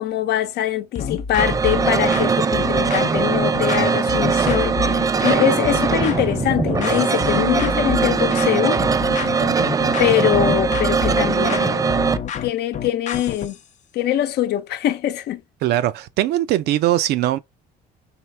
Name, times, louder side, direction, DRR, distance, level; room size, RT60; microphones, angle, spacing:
voice 1, 0.0-8.8 10.0-12.0 12.4-13.6 13.9-15.4, left 12 dB, 75° left, 0.8 m, -23 dB
sound 1, 1.0-13.6, left 7 dB, 45° left, 0.6 m, -29 dB
sound 2, 1.4-12.2, right 5 dB, 20° right, 0.4 m, -20 dB
voice 2, 15.6-17.4, right 14 dB, 75° right, 0.6 m, -20 dB
4.5 x 3.2 x 3.3 m
cardioid pair, 110°, 17 cm